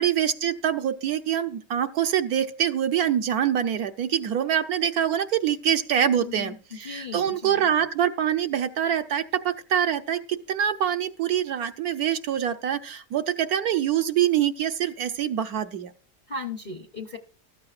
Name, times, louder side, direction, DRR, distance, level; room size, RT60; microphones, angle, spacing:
voice 1, 0.0-15.9, right 9 dB, 70° right, 1.2 m, -25 dB
voice 2, 5.9-7.7 16.3-17.2, left 3 dB, 40° left, 0.6 m, -37 dB
14.5 x 12.5 x 2.4 m
omnidirectional pair, 1.8 m